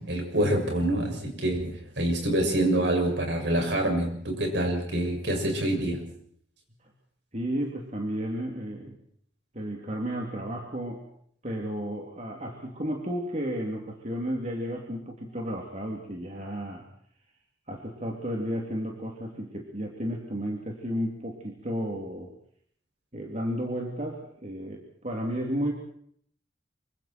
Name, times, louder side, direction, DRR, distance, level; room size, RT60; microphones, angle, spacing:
voice 1, 0.0-6.0, right 1 dB, 70° right, 2 dB, 6.7 m, -26 dB
voice 2, 7.3-9.0 9.5-11.0 11.4-16.8 17.7-22.3 23.1-25.7, equal, 40° right, 0 dB, 3.3 m, -33 dB
26.5 x 25.0 x 4.6 m, 0.63 s
head